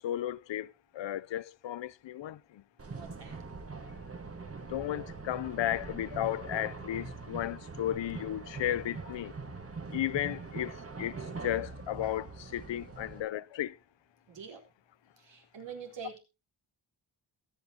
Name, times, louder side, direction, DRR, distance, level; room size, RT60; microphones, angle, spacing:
voice 1, 0.0-2.6 4.7-9.3 9.9-11.2 11.4-13.8, left 12 dB, 80° left, 0.6 m, -34 dB
sound 1, 2.8-13.2, right 4 dB, 30° right, 1.7 m, -43 dB
voice 2, 2.9-3.4 13.0-13.1 14.3-14.6 15.2-16.2, right 6 dB, 70° right, 4.1 m, -45 dB
22.5 x 9.2 x 2.8 m
wide cardioid pair, 145°, 44 cm